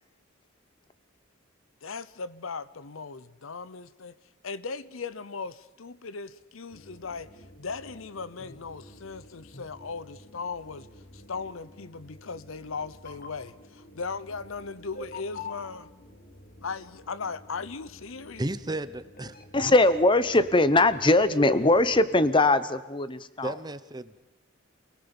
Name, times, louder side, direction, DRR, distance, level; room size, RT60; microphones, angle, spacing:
voice 1, 1.8-4.2 4.4-7.3 7.6-10.9 11.1-15.9 16.6-18.4, left 4 dB, 80° left, 17 dB, 0.8 m, -38 dB
sound 1, 6.7-22.3, left 2 dB, 45° left, 2.0 m, -47 dB
voice 2, 18.4-19.4 23.4-24.1, right 1 dB, 20° right, 13 dB, 0.8 m, -33 dB
voice 3, 19.5-23.5, left 2 dB, 25° left, 14 dB, 0.9 m, -21 dB
28.5 x 18.0 x 7.1 m, 1.0 s
head